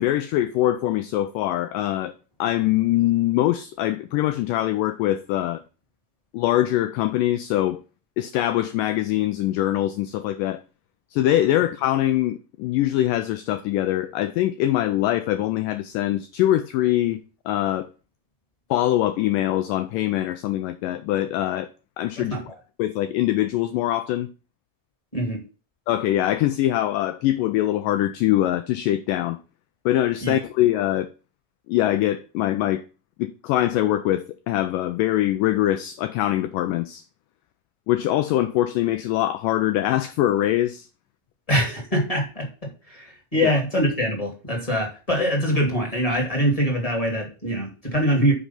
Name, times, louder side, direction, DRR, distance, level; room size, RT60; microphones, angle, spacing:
voice 1, 0.0-2.1 2.4-5.6 6.3-7.8 8.2-10.6 11.1-17.9 18.7-21.7 22.0-22.4 22.8-24.3 25.9-29.4 29.9-31.1 31.7-32.8 33.2-37.0 37.9-40.9 43.4-43.5, left 14 dB, 90° left, 1.9 m, -23 dB
voice 2, 22.2-22.6 25.1-25.4 30.2-30.4 41.5-48.3, equal, 15° left, 1.5 m, -24 dB
6.2 x 5.1 x 5.7 m
omnidirectional pair, 4.3 m